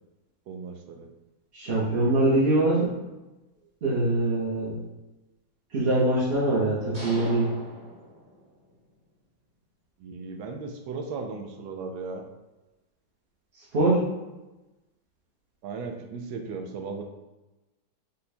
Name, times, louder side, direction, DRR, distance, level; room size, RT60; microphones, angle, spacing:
voice 1, 0.5-1.1 10.0-12.2 15.6-17.0, right 4 dB, 80° right, 4 dB, 1.3 m, -36 dB
voice 2, 1.5-2.9 3.8-4.8 5.7-7.5 13.7-14.0, right 2 dB, 50° right, -7 dB, 0.7 m, -23 dB
sound 1, 6.9-8.8, right 1 dB, 30° right, 1.0 m, -41 dB
5.5 x 2.2 x 4.1 m, 1.1 s
omnidirectional pair, 2.1 m